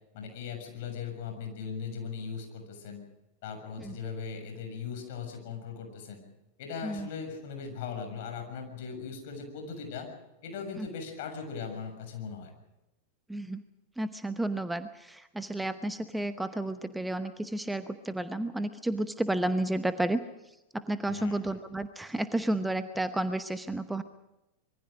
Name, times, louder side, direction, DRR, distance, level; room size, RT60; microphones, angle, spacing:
voice 1, 0.1-3.0 3.4-6.2 6.6-10.1 10.4-12.5 21.1-21.6, left 6 dB, 50° left, 5 dB, 6.8 m, -39 dB
voice 2, 13.3-13.6 14.0-20.2 20.7-24.0, right 1 dB, 5° right, 11 dB, 0.9 m, -31 dB
26.0 x 23.0 x 5.2 m, 0.95 s
figure-of-eight pair, 90°, 0 cm